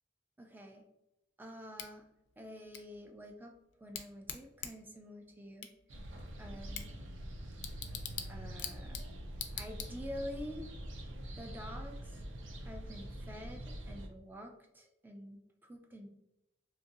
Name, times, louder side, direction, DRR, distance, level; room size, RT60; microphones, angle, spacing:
voice 1, 0.4-0.8 1.4-2.1 2.4-5.7 6.4-6.9 8.2-9.0 9.5-10.7 11.4-12.2 12.6-16.1, equal, 10° right, 3 dB, 0.3 m, -48 dB
Bicycle / Tick, 1.8-10.3, left 9 dB, 65° left, 0.4 m, -47 dB
sound 1, 5.9-14.1, right 1 dB, 85° right, 0.5 m, -45 dB
2.9 x 2.6 x 2.6 m, 0.86 s
head